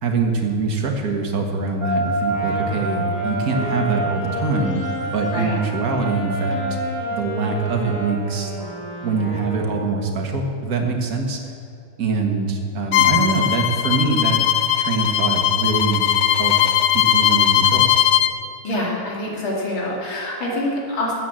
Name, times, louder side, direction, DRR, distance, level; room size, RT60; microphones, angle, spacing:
voice 1, 0.0-6.6 7.1-8.5 9.0-11.4 12.0-14.4 14.8-16.1 16.4-16.5 16.9-17.9, right 4 dB, 45° right, 3 dB, 1.9 m, -23 dB
sound 1, 1.8-8.2, right 1 dB, 20° right, 0.5 m, -28 dB
Wind instrument woodwind instrument, 2.2-10.1, equal, 40° left, 2.8 m, -33 dB
Bowed string instrument, 12.9-18.3, left 11 dB, 90° left, 1.5 m, -18 dB
voice 2, 18.6-21.1, left 1 dB, 70° left, -4 dB, 3.3 m, -25 dB
13.5 x 8.3 x 7.6 m, 2.5 s
omnidirectional pair, 2.2 m